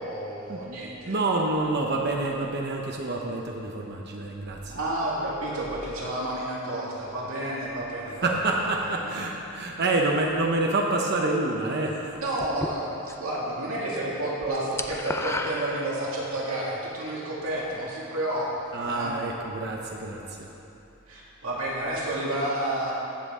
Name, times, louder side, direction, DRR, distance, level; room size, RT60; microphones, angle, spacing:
voice 1, 0.0-1.2 4.7-8.3 8.8-9.2 12.2-19.1 21.1-22.9, right 1 dB, 80° right, -5 dB, 2.3 m, -30 dB
voice 2, 1.0-4.8 8.2-12.2 18.7-20.5, right 2 dB, 50° right, 0 dB, 0.8 m, -27 dB
sound 1, 12.4-13.4 13.7-14.0 14.3-16.4, left 2 dB, 10° left, 0.4 m, -33 dB
15.0 x 7.6 x 3.7 m, 2.9 s
head